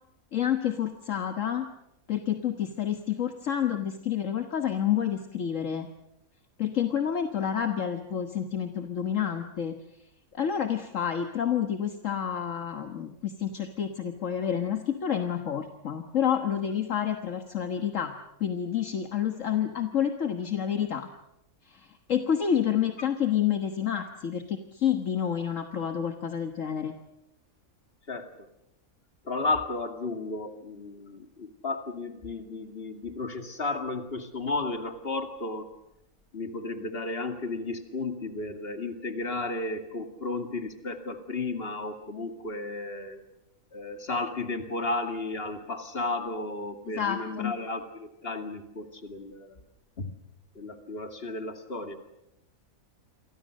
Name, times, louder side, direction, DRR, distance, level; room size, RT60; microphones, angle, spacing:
voice 1, 0.3-1.7 2.1-5.9 6.6-9.7 10.3-18.1 18.4-21.1 21.7-26.9 46.9-47.5, left 9 dB, 60° left, 6 dB, 1.7 m, -29 dB
voice 2, 29.2-35.7 36.3-43.2 43.7-49.6 50.0-50.1 50.5-52.0, left 2 dB, 45° left, 6 dB, 2.6 m, -33 dB
28.5 x 24.0 x 6.5 m, 0.87 s
omnidirectional pair, 1.5 m